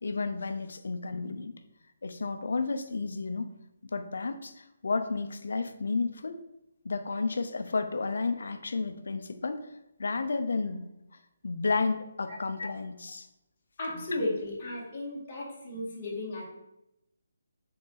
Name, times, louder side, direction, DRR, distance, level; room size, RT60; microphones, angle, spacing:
voice 1, 0.0-1.5 2.0-3.5 3.8-6.4 6.8-9.7 10.0-10.9 11.4-13.3 14.1-14.2, left 4 dB, 70° left, 9 dB, 0.6 m, -32 dB
voice 2, 13.8-16.5, left 1 dB, 25° left, -7 dB, 2.0 m, -34 dB
6.4 x 3.9 x 4.0 m, 0.86 s
hypercardioid pair, 170°, 0 cm